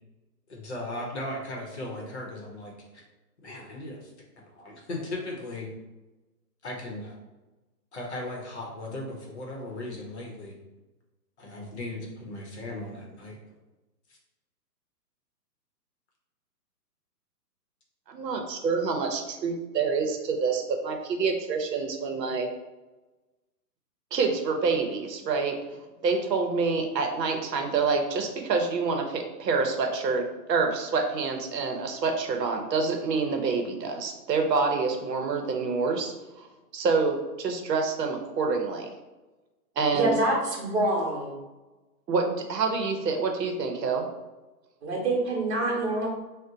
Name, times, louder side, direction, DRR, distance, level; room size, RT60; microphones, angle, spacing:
voice 1, 0.5-3.0 3.4-4.1 4.4-5.7 6.6-7.1 7.9-10.5 11.4-13.4, left 1 dB, 45° left, -1 dB, 0.7 m, -37 dB
voice 2, 18.1-22.5 24.1-25.6 26.0-36.1 36.7-38.9 39.8-40.2 42.1-44.1, right 4 dB, 80° right, 3 dB, 0.7 m, -27 dB
voice 3, 39.9-41.3 44.8-46.1, right 2 dB, 40° right, -2 dB, 0.9 m, -26 dB
2.6 x 2.1 x 3.8 m, 1.1 s
hypercardioid pair, 165°, 49 cm